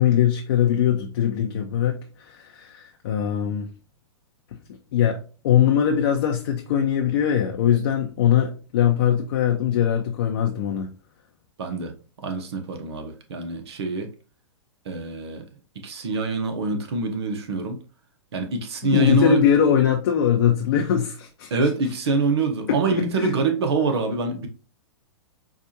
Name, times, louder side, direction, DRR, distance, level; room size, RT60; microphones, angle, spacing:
voice 1, 0.0-3.7 4.9-5.2 5.4-10.9 18.9-21.5 22.7-23.3, left 9 dB, 60° left, 0.6 m, -21 dB
voice 2, 11.6-11.9 12.2-14.1 14.9-15.4 15.7-17.8 18.3-19.4 21.5-24.5, right 3 dB, 70° right, 1.0 m, -25 dB
4.7 x 2.5 x 2.8 m
hypercardioid pair, 115°, 14 cm